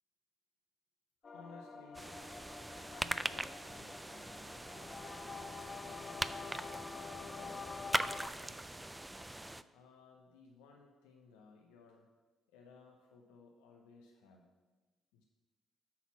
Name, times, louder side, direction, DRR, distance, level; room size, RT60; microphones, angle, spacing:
voice 1, 1.2-2.1 2.9-6.1 6.6-8.9 9.7-12.1 12.5-14.5 15.1-15.2, left 4 dB, 80° left, 1 dB, 0.6 m, -59 dB
sound 1, 1.2-8.3, left 4 dB, 40° left, 0.8 m, -48 dB
sound 2, 1.9-9.6, right 1 dB, 10° right, 0.4 m, -41 dB
8.4 x 4.1 x 5.8 m, 1.3 s
hypercardioid pair, 50°, 0 cm